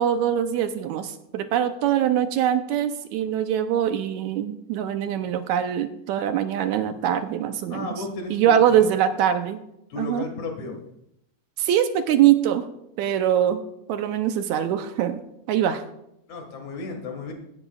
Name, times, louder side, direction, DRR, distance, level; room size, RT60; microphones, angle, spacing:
voice 1, 0.0-8.0 8.3-9.6 10.0-10.2 11.6-12.7 13.0-13.6 13.9-15.2 15.5-15.8, right 10 dB, 80° right, 9 dB, 2.0 m, -23 dB
voice 2, 7.7-8.9 9.9-10.8 16.3-17.3, left 3 dB, 70° left, 3 dB, 3.2 m, -34 dB
17.0 x 11.0 x 2.4 m, 0.79 s
omnidirectional pair, 3.5 m